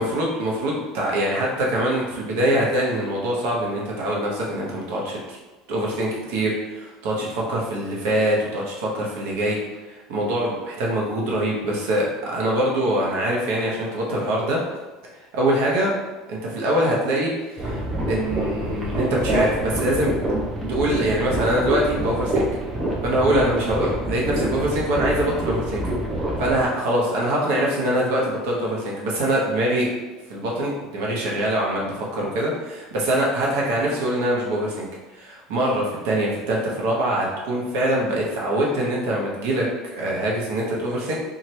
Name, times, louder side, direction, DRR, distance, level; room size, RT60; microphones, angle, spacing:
voice 1, 0.0-5.4 5.7-9.6 9.9-14.6 15.3-15.9 16.3-17.8 18.1-20.1 20.7-22.5 23.0-25.8 26.4-29.9 30.3-34.9 35.1-39.7 40.0-41.1, right 1 dB, 75° right, -3 dB, 0.8 m, -23 dB
sound 1, 17.6-26.6, right 1 dB, 15° right, 0.5 m, -26 dB
2.8 x 2.4 x 3.0 m, 1.2 s
cardioid pair, 150°, 0 cm